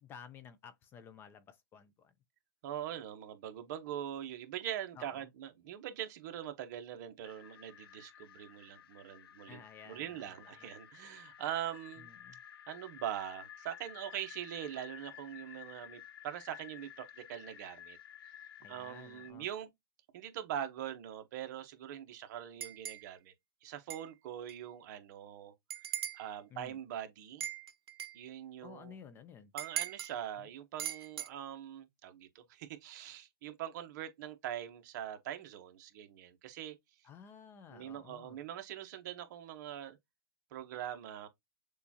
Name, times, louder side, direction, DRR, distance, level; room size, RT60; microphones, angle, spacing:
voice 1, 0.0-2.1 4.9-5.2 9.5-10.7 12.0-12.4 18.6-19.5 26.5-26.8 28.6-29.5 30.4-30.5 37.0-38.4, left 7 dB, 20° left, 0.4 m, -54 dB
voice 2, 2.6-9.6 9.9-12.1 12.7-18.0 18.7-19.7 20.1-23.3 23.6-25.5 26.1-27.4 28.1-29.0 29.5-36.7 37.7-40.0 40.5-41.3, right 11 dB, 50° right, 0.9 m, -42 dB
sound 1, 7.2-19.3, left 11 dB, 75° left, 0.6 m, -53 dB
sound 2, 22.6-23.1 23.9-24.1 24.5-24.6 25.7-26.3 27.4-28.2 29.6-30.1 30.8-31.3, right 10 dB, 80° right, 0.7 m, -39 dB
6.7 x 2.4 x 2.7 m
hypercardioid pair, 150°, 12 cm